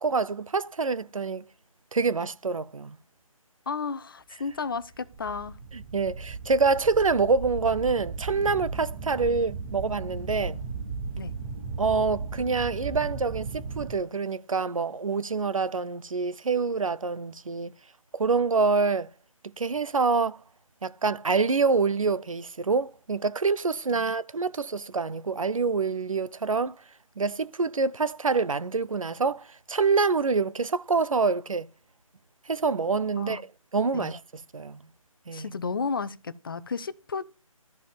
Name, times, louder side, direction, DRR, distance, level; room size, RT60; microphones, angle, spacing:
voice 1, 0.0-1.4 1.9-3.0 5.7-10.6 11.8-17.7 18.1-19.1 19.6-20.4 20.8-26.8 27.2-31.7 32.5-33.4 33.7-34.2 34.5-34.8 35.3-35.5, right 4 dB, 70° right, 0.6 m, -26 dB
voice 2, 3.7-5.6 11.1-11.3 23.9-24.1 33.1-33.4 33.9-34.1 35.3-37.2, left 5 dB, 40° left, 0.7 m, -33 dB
sound 1, 4.7-13.9, right 4 dB, 15° right, 0.8 m, -36 dB
13.0 x 5.0 x 5.1 m
figure-of-eight pair, 155°, 18 cm